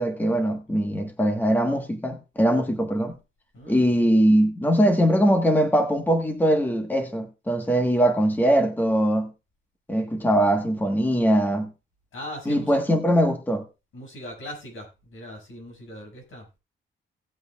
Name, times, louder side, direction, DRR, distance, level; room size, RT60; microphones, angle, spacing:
voice 1, 0.0-3.1 3.7-9.3 9.9-11.7 12.5-13.6, equal, 10° left, 1.3 m, -21 dB
voice 2, 3.5-3.9 12.1-12.8 13.9-16.5, equal, 80° left, 5.8 m, -39 dB
18.0 x 7.9 x 2.3 m
wide cardioid pair, 120°, 21 cm